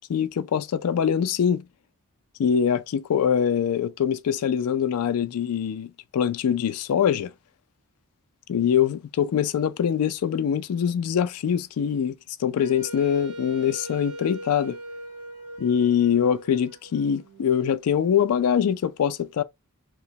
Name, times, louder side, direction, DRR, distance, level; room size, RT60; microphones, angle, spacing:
voice 1, 0.1-1.6 2.4-7.3 8.5-14.8 15.6-19.4, left 8 dB, 80° left, 0.3 m, -23 dB
Wind instrument woodwind instrument, 12.6-17.5, right 1 dB, 75° right, 0.8 m, -40 dB
2.9 x 2.1 x 2.7 m
head